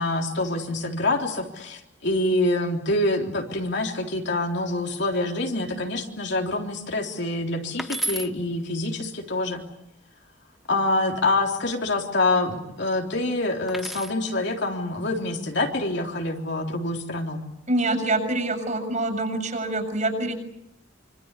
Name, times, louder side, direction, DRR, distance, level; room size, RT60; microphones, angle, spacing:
voice 1, 0.0-9.6 10.7-17.4, left 2 dB, 60° left, 2 dB, 3.7 m, -26 dB
sound 1, 7.8-8.3 10.6-11.2 13.7-14.2 15.5-16.0, right 1 dB, ahead, 1.0 m, -32 dB
voice 2, 17.7-20.3, right 2 dB, 40° right, 7 dB, 7.2 m, -25 dB
26.0 x 26.0 x 8.4 m, 0.81 s
head